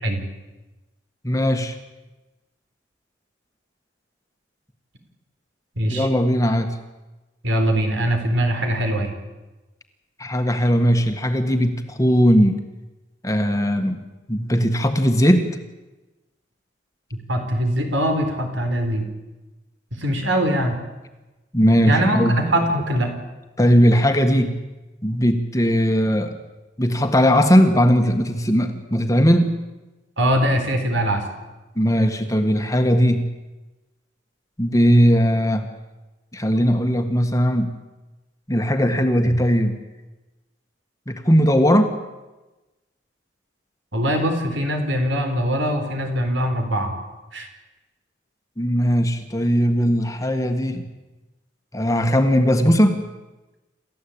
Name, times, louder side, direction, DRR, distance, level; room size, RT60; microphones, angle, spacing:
voice 1, 1.2-1.8 5.9-6.7 10.2-12.6 13.2-14.0 14.3-15.5 21.5-22.3 23.6-24.6 25.0-26.4 26.8-29.6 31.8-33.3 34.6-35.7 36.3-37.7 38.5-39.8 41.1-41.9 48.6-50.9 51.7-53.0, equal, 15° left, 6 dB, 1.6 m, -18 dB
voice 2, 5.8-6.1 7.4-9.1 17.3-19.1 19.9-20.8 21.9-23.1 30.2-31.2 43.9-46.9 47.3-47.5, equal, 75° right, 5 dB, 4.2 m, -22 dB
28.5 x 14.0 x 8.7 m, 1.1 s
head